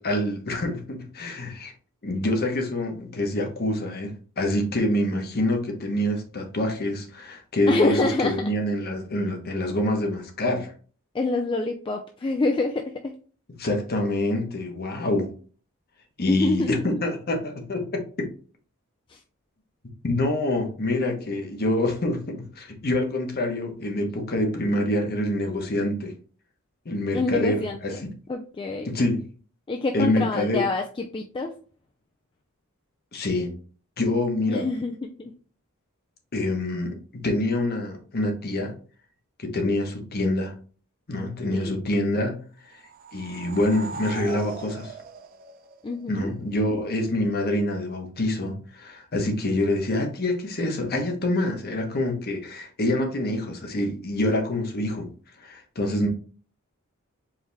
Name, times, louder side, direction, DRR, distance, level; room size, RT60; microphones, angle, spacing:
voice 1, 0.0-1.7 2.0-7.9 8.2-10.7 13.6-15.3 16.2-18.0 20.0-26.1 26.8-27.9 28.8-29.3 29.9-30.6 33.1-33.5 34.0-34.7 36.3-38.7 39.4-40.5 41.1-42.4 42.7-42.8 43.1-44.9 46.1-55.1 55.4-56.1, left 1 dB, 45° left, 0.9 m, -26 dB
voice 2, 7.7-8.4 11.1-13.2 16.3-16.8 19.1-19.2 27.1-28.0 28.3-28.9 29.7-31.6 34.5-35.3 41.5-41.8 45.8-46.3, left 3 dB, 25° left, 0.3 m, -26 dB
sound 1, 42.7-46.2, right 5 dB, 40° right, 0.5 m, -40 dB
4.7 x 2.8 x 3.3 m
head